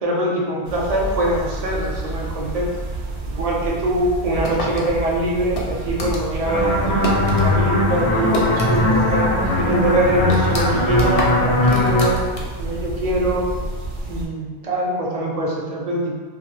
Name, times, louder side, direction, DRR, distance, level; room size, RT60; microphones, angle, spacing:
voice 1, 0.0-2.7 3.3-6.8 7.4-9.3 9.6-12.2 12.6-13.4 14.1-16.1, right 1 dB, 50° right, -2 dB, 0.5 m, -23 dB
sound 1, 0.6-14.3, right 2 dB, 75° right, 0.8 m, -29 dB
sound 2, 4.4-7.5 7.8-9.1 9.3-9.4 9.9-12.7, left 1 dB, 50° left, 0.4 m, -29 dB
sound 3, 6.5-12.1, left 2 dB, 80° left, 1.0 m, -19 dB
2.6 x 2.4 x 3.1 m, 1.4 s
omnidirectional pair, 1.1 m